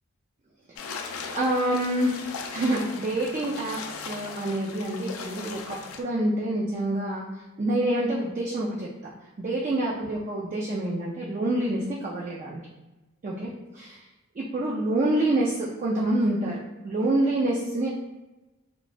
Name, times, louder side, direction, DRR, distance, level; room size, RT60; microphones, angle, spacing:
sound 1, 0.8-6.0, left 5 dB, 75° left, 0.3 m, -38 dB
voice 1, 1.3-2.1 2.5-7.3 7.6-9.1 9.4-12.6 13.2-14.0 14.4-17.9, right 1 dB, 35° right, -4 dB, 0.3 m, -27 dB
3.1 x 2.0 x 2.4 m, 1.1 s
head